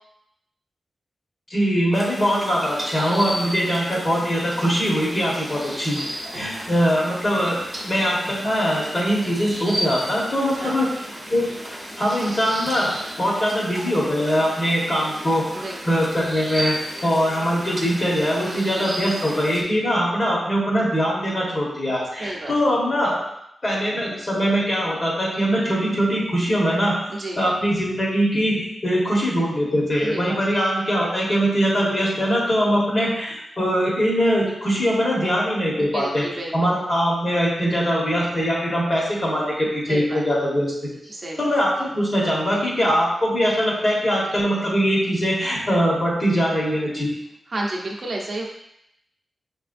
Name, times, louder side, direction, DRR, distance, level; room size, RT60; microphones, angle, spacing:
voice 1, 1.5-6.0 6.3-10.9 11.3-11.5 12.0-16.8 17.0-23.2 23.6-27.0 27.4-36.2 36.5-40.7 41.4-47.1, equal, 35° left, -4 dB, 1.3 m, -22 dB
sound 1, 1.9-19.6, equal, 10° right, 0.8 m, -34 dB
voice 2, 6.3-6.6 10.6-10.8 15.5-15.8 18.5-18.9 22.2-22.5 27.1-27.4 30.0-30.4 35.8-36.7 39.9-40.2 41.1-41.5 47.5-48.4, right 2 dB, 40° right, -2 dB, 0.7 m, -32 dB
6.2 x 3.3 x 2.6 m, 0.80 s
wide cardioid pair, 155°, 0 cm